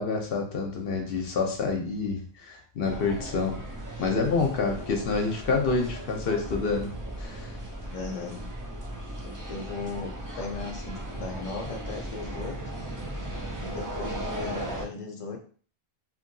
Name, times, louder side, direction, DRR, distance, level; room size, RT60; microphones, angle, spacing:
voice 1, 0.0-3.6 4.0-6.9 7.2-7.6, left 4 dB, 65° left, 3 dB, 0.8 m, -28 dB
sound 1, 2.8-14.8, right 1 dB, 30° right, 0.4 m, -37 dB
voice 2, 7.8-8.5 9.2-12.6 13.6-15.4, left 4 dB, 40° left, 1 dB, 0.6 m, -37 dB
2.8 x 2.7 x 2.6 m, 0.42 s
omnidirectional pair, 1.1 m